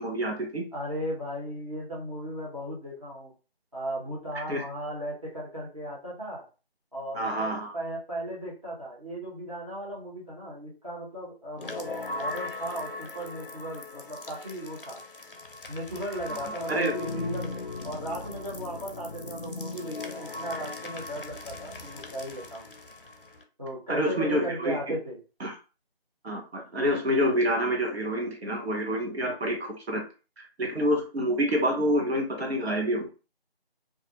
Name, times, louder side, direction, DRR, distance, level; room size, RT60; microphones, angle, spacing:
voice 1, 0.0-0.6 4.5-4.6 7.1-7.7 16.7-16.9 23.9-25.0 25.4-25.5 26.2-30.0 30.4-33.1, equal, 85° right, 3 dB, 0.8 m, -27 dB
voice 2, 0.7-3.3 3.7-6.4 6.9-15.0 15.7-22.7 23.6-25.2, right 1 dB, 35° right, -6 dB, 0.9 m, -36 dB
sound 1, 11.6-23.4, left 2 dB, 60° left, 0.4 m, -38 dB
2.4 x 2.1 x 2.9 m, 0.33 s
figure-of-eight pair, 180°, 31 cm